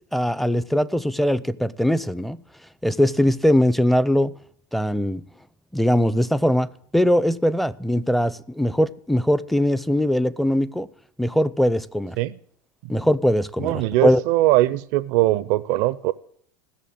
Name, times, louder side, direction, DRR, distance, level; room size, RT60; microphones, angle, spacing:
voice 1, 0.1-2.4 2.8-4.3 4.7-5.2 5.7-10.9 11.2-12.2 12.9-14.2, equal, ahead, 0.6 m, -21 dB
voice 2, 13.6-16.1, right 16 dB, 60° right, 0.5 m, -20 dB
16.0 x 6.7 x 8.7 m
hypercardioid pair, 90°, 10 cm